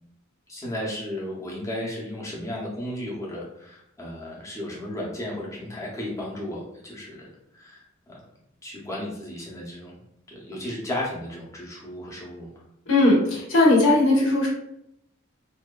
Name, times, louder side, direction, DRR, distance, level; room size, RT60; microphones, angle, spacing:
voice 1, 0.5-7.2 7.5-8.2 8.6-10.0 10.3-12.5, left 1 dB, 15° left, -4 dB, 0.5 m, -34 dB
voice 2, 12.9-14.5, left 2 dB, 80° left, -3 dB, 0.7 m, -18 dB
2.6 x 2.2 x 2.2 m, 0.78 s
head